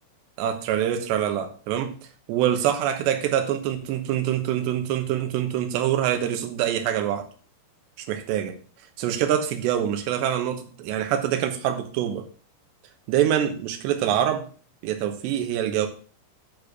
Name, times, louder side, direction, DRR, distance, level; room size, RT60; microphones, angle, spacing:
voice 1, 0.4-1.9 2.3-7.3 8.0-8.6 9.0-12.3 13.1-14.4 14.8-15.9, right 10 dB, 70° right, 3.0 m, -25 dB
10.5 x 4.3 x 6.7 m
omnidirectional pair, 5.8 m